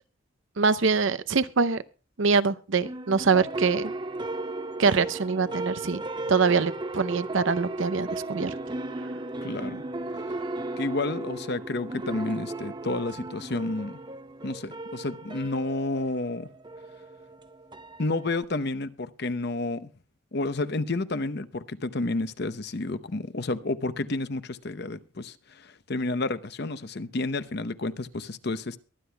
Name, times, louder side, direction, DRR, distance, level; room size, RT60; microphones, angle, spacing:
voice 1, 0.6-1.8 2.2-3.9 4.8-6.0 6.3-8.5, right 5 dB, 65° right, 0.7 m, -24 dB
sound 1, 2.8-18.4, right 2 dB, 20° right, 0.6 m, -35 dB
voice 2, 9.4-9.8 10.1-10.4 10.8-14.0 14.4-16.5 18.0-19.9 20.3-28.8, left 2 dB, 50° left, 0.8 m, -30 dB
23.0 x 9.8 x 2.3 m
head